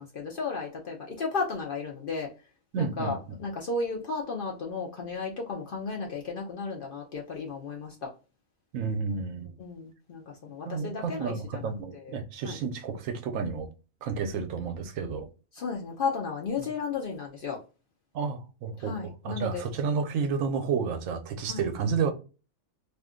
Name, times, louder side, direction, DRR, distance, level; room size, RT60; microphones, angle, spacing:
voice 1, 0.0-2.3 2.8-8.1 9.6-12.2 12.4-12.6 15.5-17.6 18.8-19.7 21.5-21.7, left 4 dB, 55° left, 0.6 m, -34 dB
voice 2, 2.7-3.4 8.7-9.5 10.7-13.7 14.0-15.3 18.1-22.1, right 5 dB, 75° right, 0.9 m, -31 dB
2.5 x 2.4 x 3.6 m
omnidirectional pair, 1.4 m